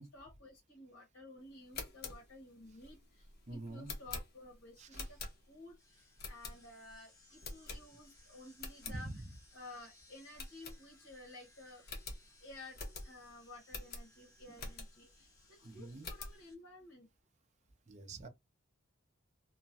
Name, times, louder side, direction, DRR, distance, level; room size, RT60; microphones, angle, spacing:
voice 1, 0.1-5.2 5.5-9.1 9.5-11.8 12.4-12.8 13.0-17.1, left 2 dB, 70° left, 1.3 m, -54 dB
sound 1, 1.6-5.7 6.2-6.9 7.4-8.2 8.5-9.0 9.4-9.5 9.8-9.9 10.3-11.2 11.5-11.6 11.8-15.1 15.6-16.4, left 3 dB, 50° left, 0.9 m, -47 dB
voice 2, 3.5-3.9 4.8-5.0 8.9-9.2 15.6-16.1 17.9-18.3, right 2 dB, 35° right, 0.5 m, -45 dB
sound 2, 4.9-16.5, left 2 dB, 15° left, 1.0 m, -65 dB
3.0 x 2.2 x 2.6 m
head